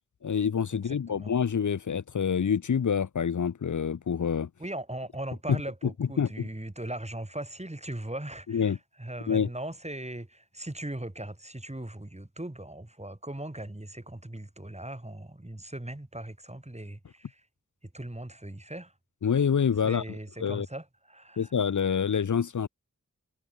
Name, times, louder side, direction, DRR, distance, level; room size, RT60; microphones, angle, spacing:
voice 1, 0.2-4.5 6.2-6.5 8.5-8.8 9.3-9.5 19.2-20.0 20.4-20.7 21.4-22.7, left 7 dB, 75° left, 0.7 m, -27 dB
voice 2, 0.8-1.4 4.6-17.5 17.8-18.9 19.8-21.5, right 1 dB, 20° right, 5.2 m, -39 dB
wide cardioid pair, 55°, 30 cm